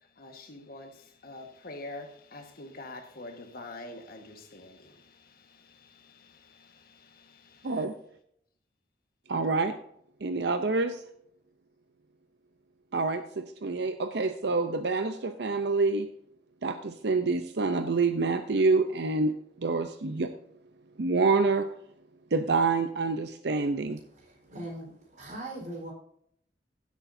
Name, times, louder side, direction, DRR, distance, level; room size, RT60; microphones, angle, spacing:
voice 1, 0.2-7.8, left 2 dB, 60° left, 1.5 m, -46 dB
voice 2, 7.6-7.9 9.3-9.7 10.2-11.0 12.9-16.1 16.6-20.3 21.0-21.7 22.3-24.0, right 3 dB, 70° right, 0.7 m, -27 dB
voice 3, 24.2-25.9, right 1 dB, 45° right, 4.4 m, -40 dB
16.0 x 8.3 x 2.7 m
head